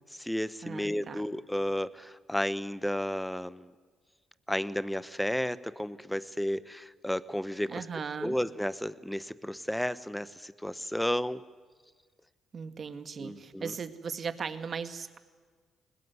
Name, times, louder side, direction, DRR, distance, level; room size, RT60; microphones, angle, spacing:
voice 1, 0.1-3.7 4.5-7.9 8.2-11.4 13.2-13.7, equal, 5° left, 16 dB, 1.0 m, -32 dB
voice 2, 0.6-1.2 7.7-8.4 12.5-15.2, right 6 dB, 45° right, 10 dB, 2.0 m, -38 dB
21.5 x 20.5 x 9.7 m, 1.5 s
cardioid pair, 90°, 0 cm